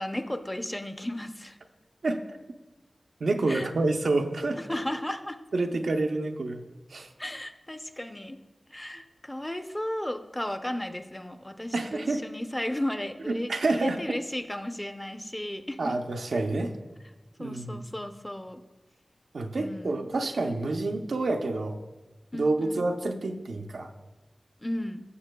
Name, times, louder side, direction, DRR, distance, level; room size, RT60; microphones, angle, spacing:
voice 1, 0.0-1.6 3.5-3.7 4.6-5.4 7.2-8.4 8.7-15.9 17.4-18.6 19.6-20.1 22.3-22.8 24.6-25.0, left 1 dB, 15° left, 7 dB, 0.5 m, -34 dB
voice 2, 3.2-4.6 5.5-6.6 6.9-7.1 11.7-12.2 13.5-14.0 15.8-16.7 17.4-17.8 19.3-21.8 22.3-23.9, right 2 dB, 90° right, 3 dB, 0.6 m, -28 dB
15.0 x 7.4 x 2.2 m, 1.2 s
wide cardioid pair, 85°, 0 cm